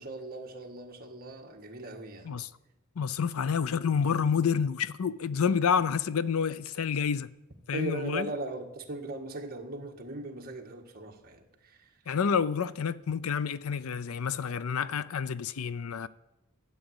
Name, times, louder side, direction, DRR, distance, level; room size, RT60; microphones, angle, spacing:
voice 1, 0.0-2.4 7.7-11.9, right 2 dB, 45° right, 1.6 m, -39 dB
voice 2, 3.0-7.3 7.7-8.3 12.1-16.1, left 6 dB, 75° left, 0.5 m, -29 dB
12.5 x 8.3 x 7.9 m
head